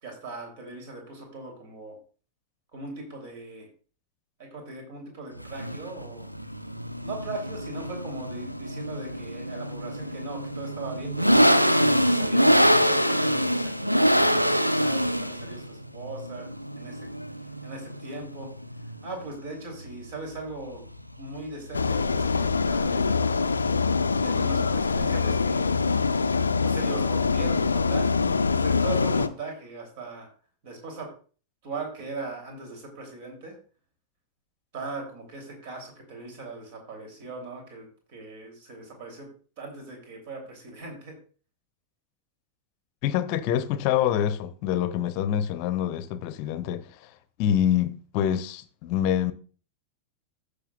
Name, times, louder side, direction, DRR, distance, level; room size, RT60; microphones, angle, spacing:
voice 1, 0.0-2.0 2.7-3.7 4.4-6.3 7.0-11.4 11.9-16.5 16.8-17.1 17.6-18.5 19.0-20.8 21.2-23.6 24.2-25.8 26.6-28.1 28.5-30.3 30.6-31.1 31.6-33.6 34.7-39.3 39.6-41.2, right 3 dB, 50° right, 3.2 m, -39 dB
sound 1, 5.4-23.3, equal, 90° right, 0.5 m, -25 dB
sound 2, 21.7-29.3, left 4 dB, 75° left, 0.5 m, -24 dB
voice 2, 43.0-47.1 47.4-49.3, left 10 dB, 45° left, 0.7 m, -26 dB
15.0 x 6.6 x 2.4 m
figure-of-eight pair, 90°, 0 cm